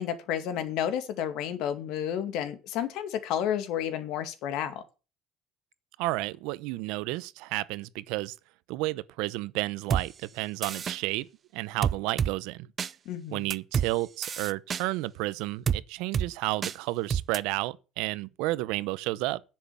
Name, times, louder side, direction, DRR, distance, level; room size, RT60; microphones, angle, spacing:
voice 1, 0.0-4.8 13.1-13.5, left 9 dB, 70° left, 2.3 m, -31 dB
voice 2, 6.0-8.3 8.7-12.7 13.3-19.4, right 19 dB, 85° right, 0.8 m, -32 dB
sound 1, 9.9-10.0 10.6-11.0 11.8-12.3 12.8-12.9 13.5-13.9 14.2-14.8 15.7-15.8 16.1-16.3 16.6-16.8 17.1-17.4, right 7 dB, 30° right, 0.6 m, -28 dB
10.5 x 7.7 x 7.1 m
cardioid pair, 150°, 0 cm